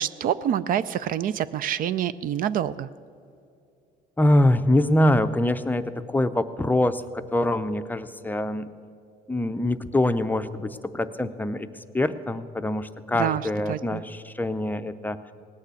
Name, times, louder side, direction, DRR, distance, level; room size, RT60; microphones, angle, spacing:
voice 1, 0.0-2.9 13.1-14.0, right 10 dB, 55° right, 16 dB, 0.4 m, -27 dB
voice 2, 4.2-8.7 9.3-11.7 11.9-15.2, left 1 dB, 10° left, 10 dB, 0.5 m, -24 dB
18.0 x 6.6 x 8.3 m, 2.5 s
cardioid pair, 110°, 17 cm